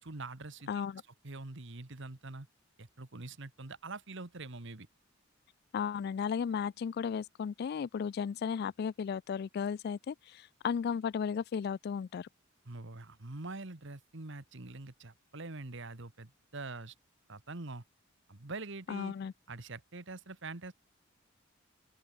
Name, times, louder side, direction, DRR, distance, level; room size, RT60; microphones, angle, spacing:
voice 1, 0.0-0.7 1.2-2.5 2.8-4.9 12.6-16.9 17.3-17.8 18.3-19.1 19.5-20.7, right 3 dB, 65° right, 1.7 m, -44 dB
voice 2, 0.7-1.0 5.7-12.3 18.9-19.3, left 7 dB, 50° left, 0.3 m, -35 dB
open air
head